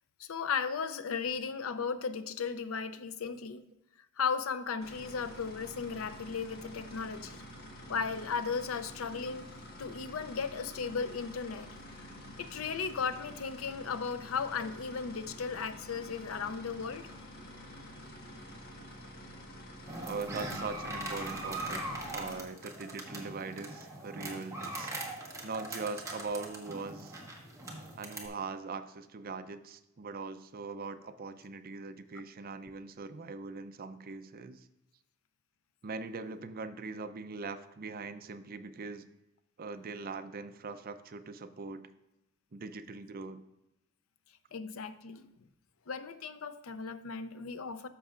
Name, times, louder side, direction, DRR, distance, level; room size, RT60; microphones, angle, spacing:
voice 1, 0.2-3.6 4.2-7.4 7.9-9.5 9.8-11.7 12.0-12.1 12.4-17.1 44.5-45.2 45.9-47.9, left 5 dB, 80° left, 12 dB, 0.6 m, -36 dB
sound 1, 4.8-22.4, equal, 50° left, 1.5 m, -48 dB
sound 2, 19.9-28.3, right 2 dB, 15° right, 1.5 m, -41 dB
voice 2, 20.0-24.9 25.4-27.2 28.0-34.7 35.8-39.0 39.6-41.9 42.5-43.4, right 4 dB, 45° right, 10 dB, 0.5 m, -41 dB
14.0 x 6.1 x 2.5 m, 0.91 s
head